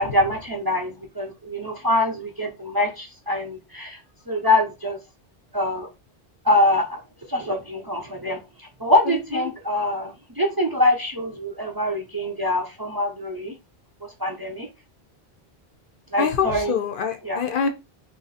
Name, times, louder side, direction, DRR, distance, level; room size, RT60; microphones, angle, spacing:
voice 1, 0.0-4.0 4.3-5.0 5.5-5.9 6.4-7.0 7.3-13.5 14.0-14.7 16.1-16.7 17.2-17.4, left 1 dB, 25° right, 0.5 m, -24 dB
voice 2, 9.1-9.5 16.2-17.7, left 6 dB, 60° left, 0.7 m, -25 dB
3.0 x 2.6 x 4.0 m
omnidirectional pair, 1.1 m